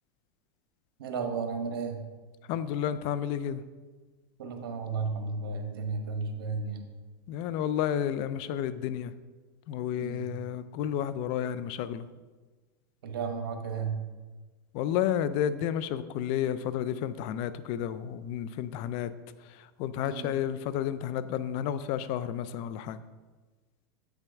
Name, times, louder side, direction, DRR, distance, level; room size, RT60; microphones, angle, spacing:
voice 1, 1.0-2.0 4.4-6.8 10.0-10.4 13.0-14.0 20.0-20.3, right 4 dB, 80° right, 5 dB, 1.2 m, -33 dB
voice 2, 2.5-3.6 7.3-9.1 9.7-12.1 14.7-19.1 19.8-23.0, left 10 dB, 50° left, 14 dB, 0.4 m, -31 dB
8.1 x 5.8 x 3.5 m, 1.3 s
supercardioid pair, 125°, 12 cm